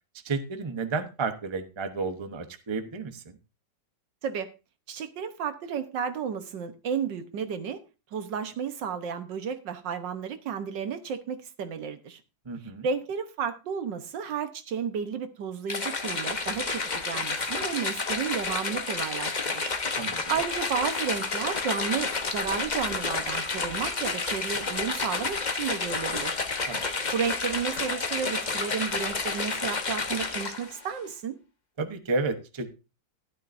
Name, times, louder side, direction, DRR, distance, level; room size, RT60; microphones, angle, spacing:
voice 1, 0.2-3.4 12.5-12.9 20.0-20.2 26.7-27.0 31.8-32.7, right 4 dB, 20° right, 0.7 m, -32 dB
voice 2, 4.9-7.8 8.1-12.2 12.8-19.7 20.3-26.4 27.1-31.4, right 7 dB, 70° right, 1.7 m, -32 dB
sound 1, 15.7-30.8, left 4 dB, 30° left, 0.9 m, -30 dB
12.5 x 12.0 x 2.6 m
omnidirectional pair, 2.0 m